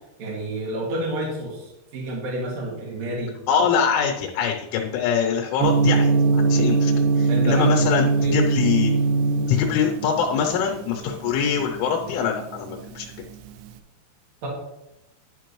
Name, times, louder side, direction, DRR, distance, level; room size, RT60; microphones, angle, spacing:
voice 1, 0.2-3.3 7.3-7.8 8.2-8.3 14.4-14.5, right 1 dB, 45° right, -4 dB, 2.8 m, -29 dB
voice 2, 3.5-8.9 9.5-13.1, left 7 dB, 90° left, 1 dB, 3.3 m, -24 dB
Gong, 5.6-13.7, right 4 dB, 90° right, 3.1 m, -22 dB
11.5 x 5.2 x 3.1 m, 0.93 s
omnidirectional pair, 5.4 m